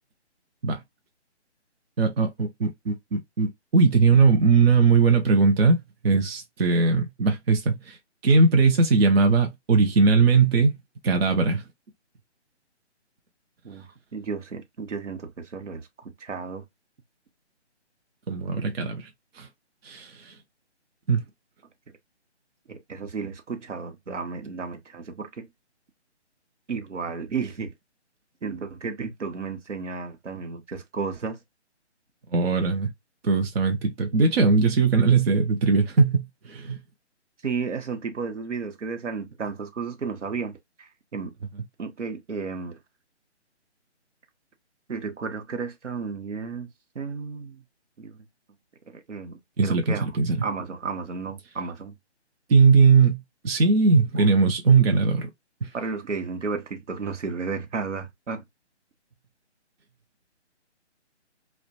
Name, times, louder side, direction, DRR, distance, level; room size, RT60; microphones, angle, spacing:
voice 1, 2.0-5.8 6.0-8.0 8.2-10.8 11.0-11.6 18.3-19.1 19.4-19.5 19.8-20.3 21.1-21.2 32.3-32.9 33.2-36.8 49.6-50.4 52.5-55.3 55.6-55.7, right 4 dB, 60° right, 0.6 m, -20 dB
voice 2, 13.6-16.6 22.7-25.5 26.7-27.7 28.4-31.4 37.4-41.3 41.8-42.8 44.9-46.7 46.9-47.6 48.0-48.2 48.9-50.1 50.4-51.9 54.2-54.3 55.7-58.4, right 5 dB, 90° right, 0.8 m, -33 dB
2.3 x 2.1 x 2.5 m
figure-of-eight pair, 150°, 35 cm